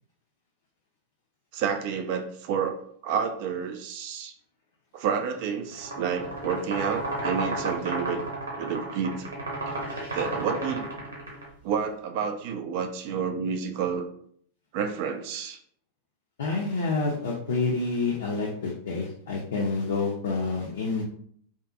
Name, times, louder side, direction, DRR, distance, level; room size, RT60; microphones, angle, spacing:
voice 1, 1.5-2.8 3.0-4.3 4.9-8.2 8.6-9.3 9.7-9.8 10.1-10.9 11.6-14.1 14.7-15.6, right 7 dB, 45° right, 6 dB, 0.3 m, -29 dB
sound 1, 5.7-11.5, right 2 dB, 75° right, 0.8 m, -32 dB
voice 2, 16.4-21.0, left 3 dB, 60° left, -3 dB, 0.4 m, -28 dB
2.5 x 2.3 x 2.3 m, 0.62 s
figure-of-eight pair, 90°, 0 cm